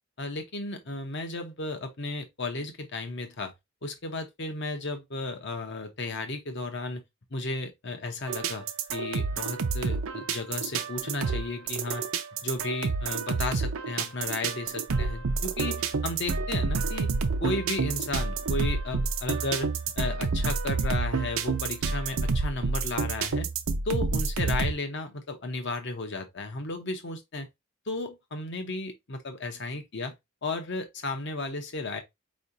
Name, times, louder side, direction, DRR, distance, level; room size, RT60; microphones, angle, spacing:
voice 1, 0.2-3.5 3.8-7.0 7.3-12.1 12.4-17.1 17.4-19.7 20.0-23.5 23.8-27.5 27.9-30.1 30.4-32.0, left 2 dB, 55° left, 1.0 m, -34 dB
sound 1, 8.3-24.7, right 4 dB, 85° right, 0.6 m, -29 dB
4.8 x 3.2 x 2.6 m
head